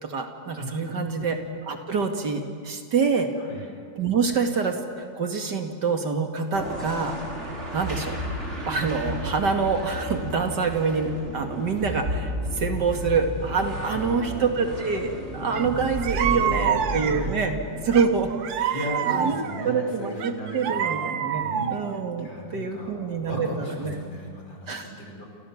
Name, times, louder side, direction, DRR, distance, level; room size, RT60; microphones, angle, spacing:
voice 1, 0.0-3.3 4.0-7.2 7.4-8.2 8.7-18.3 18.6-18.8 19.1-23.5 23.8-24.0 24.7-24.9, right 5 dB, 65° right, 5 dB, 2.7 m, -26 dB
voice 2, 0.6-1.4 3.4-3.6 13.7-14.5 16.1-17.4 18.7-21.9 22.2-25.3, equal, 80° left, 0 dB, 6.3 m, -36 dB
sound 1, 6.5-19.0, right 1 dB, 35° right, 5.1 m, -33 dB
sound 2, 15.5-15.7 16.0-17.4 17.9-19.7 20.2-22.0, right 9 dB, 80° right, 1.7 m, -27 dB
29.0 x 28.0 x 7.3 m, 2.2 s
omnidirectional pair, 2.0 m